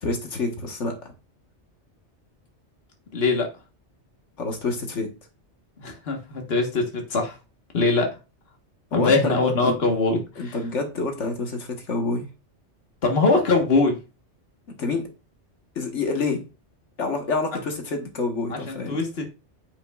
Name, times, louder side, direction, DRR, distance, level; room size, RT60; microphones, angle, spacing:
voice 1, 0.0-1.1 4.4-5.1 8.9-9.4 9.6-9.7 10.4-12.3 14.8-15.1 15.7-16.4 17.0-19.0, left 3 dB, 85° left, 1.7 m, -27 dB
voice 2, 3.1-3.5 5.8-7.4 7.7-8.1 8.9-10.5 13.0-14.0 18.5-19.2, left 3 dB, 60° left, 1.6 m, -22 dB
8.6 x 5.2 x 2.4 m
omnidirectional pair, 1.2 m